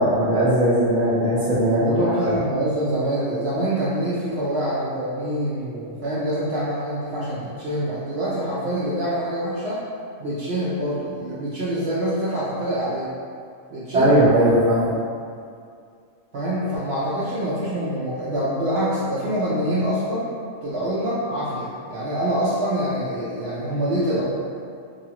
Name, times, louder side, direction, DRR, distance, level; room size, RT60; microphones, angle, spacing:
voice 1, 0.0-2.3 13.9-14.9, equal, 5° right, -11 dB, 0.4 m, -19 dB
voice 2, 1.8-9.8 10.2-13.1 13.7-14.2 16.3-20.3 20.6-24.4, right 1 dB, 65° right, -8 dB, 0.7 m, -25 dB
2.7 x 2.3 x 2.8 m, 2.3 s
omnidirectional pair, 1.4 m